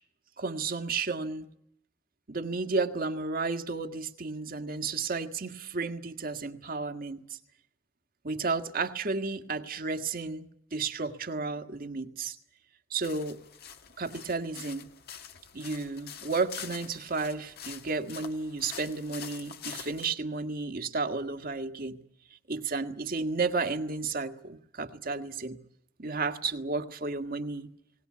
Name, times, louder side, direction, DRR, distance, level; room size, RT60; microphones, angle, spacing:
voice 1, 0.4-1.5 2.3-7.2 8.2-10.5 10.7-12.4 12.9-13.4 14.0-14.9 15.5-22.0 22.5-25.6 26.0-27.7, right 4 dB, 50° right, 8 dB, 1.7 m, -32 dB
sound 1, 13.0-20.1, left 8 dB, 55° left, 1.6 m, -45 dB
20.5 x 18.5 x 9.5 m, 0.72 s
head